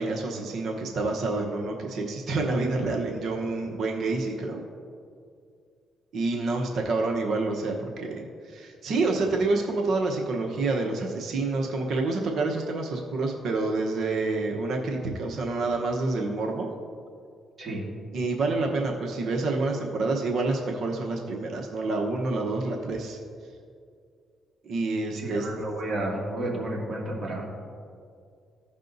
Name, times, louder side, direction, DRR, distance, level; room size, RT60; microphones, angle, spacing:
voice 1, 0.0-4.6 6.1-16.7 18.1-23.2 24.6-25.5, right 3 dB, 65° right, 1 dB, 1.0 m, -28 dB
voice 2, 25.2-27.6, right 1 dB, 35° right, -3 dB, 2.2 m, -31 dB
15.5 x 5.4 x 2.7 m, 2.3 s
cardioid pair, 90°, 0 cm